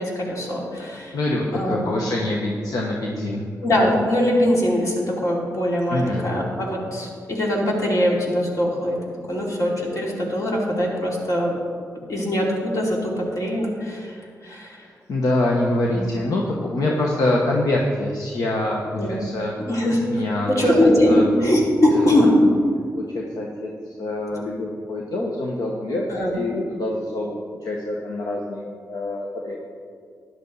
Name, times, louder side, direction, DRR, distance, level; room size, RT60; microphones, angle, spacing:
voice 1, 0.0-1.1 1.5-2.0 3.6-9.0 9.3-11.5 12.1-14.2 14.4-14.7 15.9-16.0 18.9-19.2 19.7-20.0 20.5-22.3 26.1-26.3, left 1 dB, 60° left, -3 dB, 3.0 m, -21 dB
voice 2, 1.1-3.5 5.9-6.2 14.8-18.8 19.1-19.5 20.1-20.7 21.1-21.2 22.2-22.3 23.0-26.1 26.3-29.6, left 1 dB, 75° left, -1 dB, 1.2 m, -25 dB
13.0 x 10.5 x 4.0 m, 2.1 s
cardioid pair, 80°, 6 cm